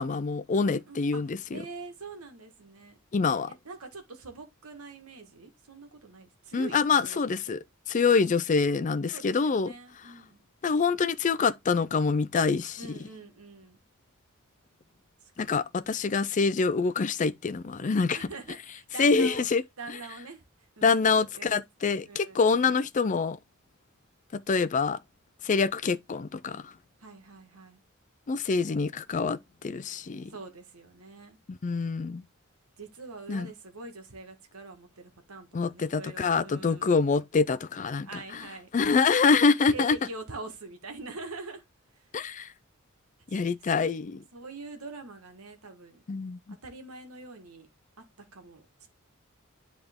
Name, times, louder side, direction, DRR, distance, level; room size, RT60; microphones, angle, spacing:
voice 1, 0.0-1.6 3.1-3.5 6.5-7.6 7.9-9.7 10.6-12.8 15.4-18.3 19.0-19.6 19.9-20.0 20.8-23.4 24.3-25.0 25.4-26.7 28.3-30.3 31.5-32.2 33.3-33.5 35.5-38.1 38.3-38.5 38.7-39.9 42.1-42.5 43.3-44.2 46.1-46.6, left 4 dB, 35° left, 0.4 m, -26 dB
voice 2, 0.6-3.0 3.5-7.2 7.5-7.6 9.1-10.4 12.8-13.8 15.2-15.6 18.1-19.4 19.8-20.4 20.8-21.6 22.0-22.8 27.0-27.8 30.3-31.4 32.8-37.0 38.1-38.7 39.7-41.6 41.9-42.0 43.3-43.4 43.7-43.9 44.3-46.0 46.5-47.7 48.0-48.9, right 3 dB, 90° right, 1.6 m, -44 dB
10.0 x 3.6 x 3.5 m
head